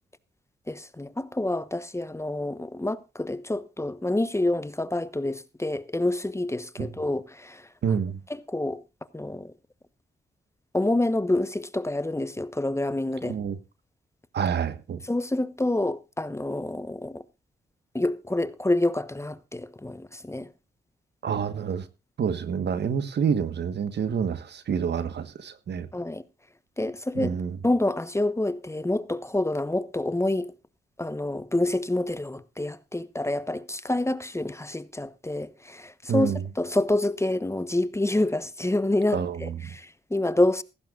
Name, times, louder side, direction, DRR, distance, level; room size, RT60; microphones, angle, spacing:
voice 1, 0.7-8.0 8.3-8.8 9.1-9.5 10.7-13.4 15.1-17.2 17.9-20.5 25.9-26.2 26.8-27.4 27.6-30.6 31.0-40.6, left 1 dB, 15° left, 1.0 m, -27 dB
voice 2, 7.8-8.2 13.2-13.6 14.3-15.0 21.2-21.8 22.2-25.9 27.2-27.6 36.1-36.4 39.1-39.5, right 7 dB, 70° right, 1.4 m, -28 dB
16.5 x 15.0 x 2.5 m
supercardioid pair, 50°, 18 cm